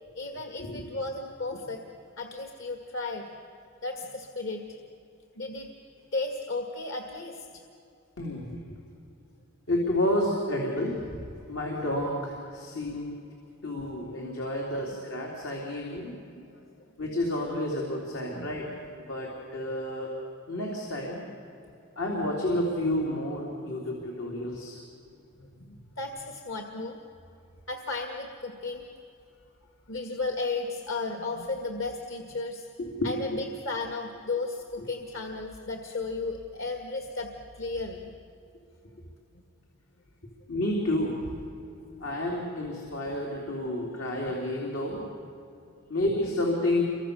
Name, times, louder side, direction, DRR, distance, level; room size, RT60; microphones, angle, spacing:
voice 1, 0.1-3.3 3.8-4.6 5.4-5.7 6.1-7.5 15.9-16.0 16.3-16.6 18.3-18.5 25.4-27.0 27.7-28.9 29.9-32.7 33.0-38.1 41.9-42.0, left 3 dB, 70° left, 3 dB, 1.9 m, -34 dB
voice 2, 8.2-8.6 9.7-11.1 11.5-13.1 13.6-16.1 17.0-20.1 20.5-21.2 22.0-24.8 32.8-33.4 40.5-41.3 42.0-45.0 45.9-46.8, left 1 dB, 85° left, -2 dB, 3.7 m, -30 dB
29.0 x 24.5 x 7.1 m, 2.6 s
head